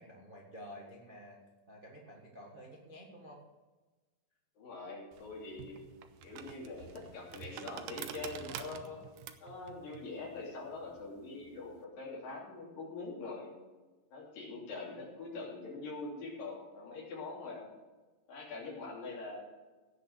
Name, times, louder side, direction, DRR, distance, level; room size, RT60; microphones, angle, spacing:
voice 1, 0.0-1.4 1.7-3.4 8.4-9.1, equal, 45° right, -2 dB, 0.6 m, -51 dB
voice 2, 4.6-5.8 6.2-9.0 9.4-13.5 14.1-17.7 18.3-19.5, left 3 dB, 75° left, -3 dB, 4.7 m, -43 dB
sound 1, 5.1-11.8, right 10 dB, 80° right, 2.2 m, -48 dB
16.5 x 6.6 x 6.5 m, 1.2 s
omnidirectional pair, 4.0 m